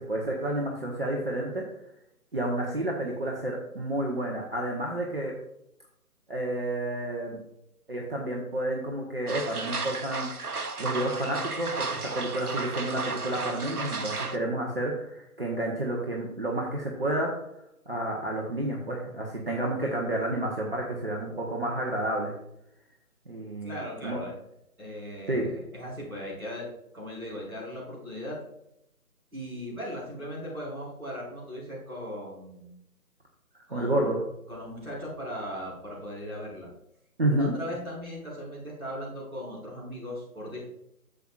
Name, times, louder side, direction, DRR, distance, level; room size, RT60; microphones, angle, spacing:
voice 1, 0.0-1.6 2.3-5.3 6.3-7.4 7.9-10.3 10.8-17.3 17.9-22.3 23.3-24.2 25.3-25.6 33.7-34.2 37.2-37.5, right 1 dB, 40° right, -2 dB, 1.1 m, -30 dB
sound 1, 9.3-14.4, right 3 dB, 75° right, 0.9 m, -33 dB
voice 2, 23.6-24.3 24.8-28.4 29.3-32.8 33.7-34.1 34.5-36.7 37.3-40.7, equal, 5° right, -14 dB, 2.7 m, -38 dB
11.5 x 7.4 x 2.5 m, 0.79 s
figure-of-eight pair, 155°, 45 cm